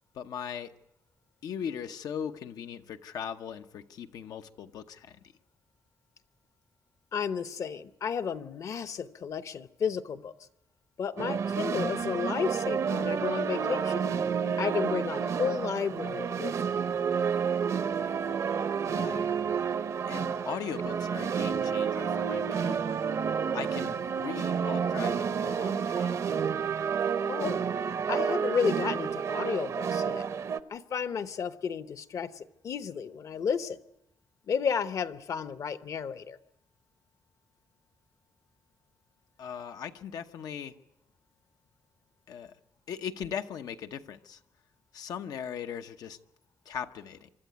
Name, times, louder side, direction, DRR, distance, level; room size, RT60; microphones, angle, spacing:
voice 1, 0.1-0.7 1.4-5.2 18.9-19.2 20.1-22.8 23.5-26.2 39.4-40.7 42.3-42.6 42.9-44.4 44.9-46.2 46.6-47.3, left 8 dB, 90° left, 7 dB, 0.9 m, -39 dB
voice 2, 7.1-10.3 11.0-14.0 14.6-16.8 27.3-27.6 28.1-30.3 30.7-33.8 34.5-36.4, left 6 dB, 60° left, 12 dB, 0.9 m, -32 dB
sound 1, 11.2-30.6, right 6 dB, 55° right, 0.7 m, -30 dB
25.0 x 13.0 x 9.3 m, 0.86 s
cardioid pair, 125°, 6 cm